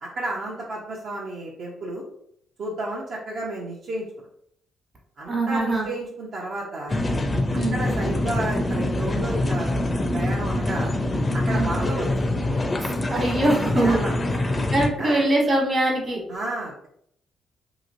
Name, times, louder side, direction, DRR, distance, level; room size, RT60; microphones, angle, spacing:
voice 1, 0.0-2.0 2.6-4.1 5.2-7.0 7.7-10.9 11.3-12.3 13.5-14.5 15.0-15.2 16.3-16.9, right 1 dB, 60° right, -4 dB, 0.7 m, -32 dB
voice 2, 5.3-5.9 7.5-7.8 11.5-11.7 12.8-14.0 14.7-16.2, right 2 dB, 40° right, -2 dB, 1.3 m, -23 dB
sound 1, 6.9-14.9, left 1 dB, 25° left, 0.4 m, -25 dB
2.9 x 2.9 x 2.6 m, 0.69 s
cardioid pair, 90°, 0 cm